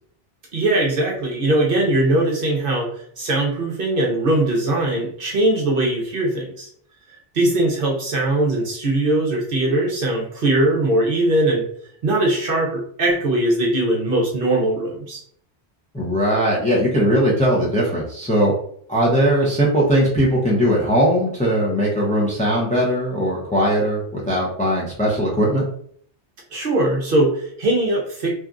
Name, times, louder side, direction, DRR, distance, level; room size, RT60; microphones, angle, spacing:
voice 1, 0.5-2.9 3.2-6.7 7.3-11.6 12.0-15.2 26.5-28.4, right 1 dB, 55° right, -1 dB, 0.8 m, -20 dB
voice 2, 15.9-18.5 18.9-25.6, equal, 10° left, -4 dB, 0.5 m, -19 dB
2.8 x 2.5 x 2.4 m, 0.62 s
omnidirectional pair, 1.2 m